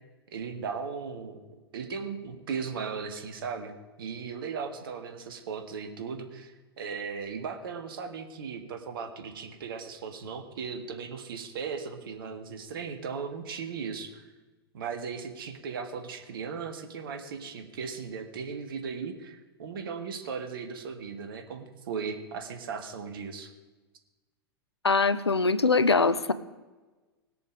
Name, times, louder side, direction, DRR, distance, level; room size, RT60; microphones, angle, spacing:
voice 1, 0.3-1.4 1.7-3.7 4.0-14.2 14.7-23.5, right 6 dB, 60° right, 6 dB, 1.6 m, -37 dB
voice 2, 24.8-26.3, left 4 dB, 85° left, 14 dB, 0.6 m, -22 dB
19.5 x 6.9 x 5.2 m, 1.2 s
figure-of-eight pair, 95°, 13 cm